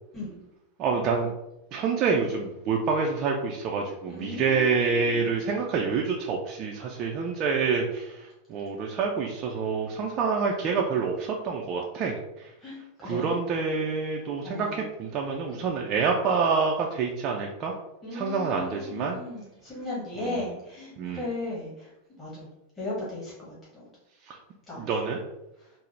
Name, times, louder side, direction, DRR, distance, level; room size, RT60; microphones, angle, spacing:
voice 1, 0.8-1.3 1.7-12.5 13.0-17.7 18.1-19.2 20.2-20.5 21.0-21.3 24.3-24.4 24.8-25.2, right 5 dB, 35° right, 0 dB, 0.4 m, -27 dB
voice 2, 4.1-5.4 12.6-13.3 14.4-14.8 18.0-21.9 22.2-22.5 22.8-23.9 24.7-24.8, left 2 dB, 10° left, -9 dB, 1.3 m, -36 dB
3.9 x 2.0 x 3.1 m, 0.90 s
figure-of-eight pair, 90°, 0 cm